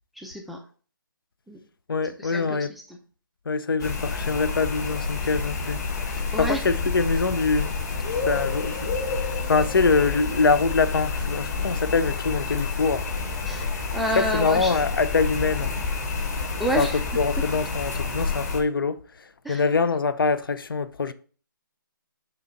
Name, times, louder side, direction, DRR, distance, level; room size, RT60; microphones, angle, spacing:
voice 1, 0.2-0.6 1.5-1.6 2.2-3.0 6.3-6.7 13.5-14.8 16.6-17.0 19.4-19.7, equal, ahead, 0.3 m, -29 dB
voice 2, 1.9-2.7 3.5-7.8 8.1-13.0 14.2-15.7 16.8-16.9 17.2-19.0 19.5-21.1, left 4 dB, 80° left, 0.6 m, -24 dB
sound 1, 3.8-18.6, left 4 dB, 45° left, 1.5 m, -29 dB
6.7 x 2.9 x 5.0 m
hypercardioid pair, 150°, 12 cm